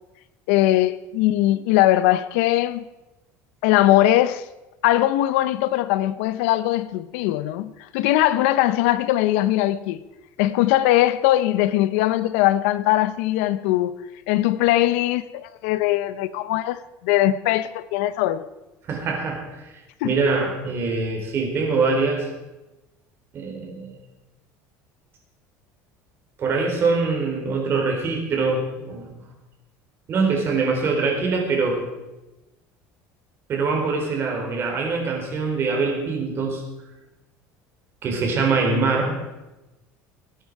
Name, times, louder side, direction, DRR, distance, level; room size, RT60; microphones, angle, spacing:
voice 1, 0.5-2.8 3.6-4.4 4.8-10.0 10.4-13.9 14.3-18.4 20.0-20.1, left 14 dB, 90° left, 0.7 m, -20 dB
voice 2, 18.9-19.4 20.0-22.3 23.3-24.0 26.4-29.1 30.1-31.9 33.5-36.6 38.0-39.1, right 4 dB, 35° right, 4.0 m, -23 dB
19.5 x 10.0 x 4.8 m
cardioid pair, 145°, 7 cm